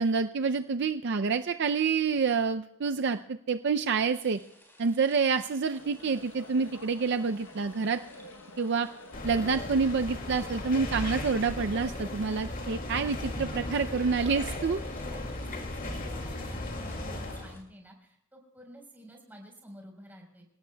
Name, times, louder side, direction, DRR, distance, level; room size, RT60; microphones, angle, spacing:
voice 1, 0.0-4.4 4.8-8.0 8.6-8.9 9.2-14.8, right 5 dB, 55° right, 8 dB, 0.5 m, -28 dB
sound 1, 4.1-17.6, equal, 10° left, 4.5 m, -58 dB
sound 2, 5.8-11.5, left 2 dB, 65° left, 0.9 m, -49 dB
sound 3, 9.1-17.6, left 1 dB, 40° left, 2.1 m, -36 dB
voice 2, 15.0-20.5, equal, 10° right, 1 dB, 4.1 m, -51 dB
27.5 x 17.5 x 2.2 m, 0.79 s
head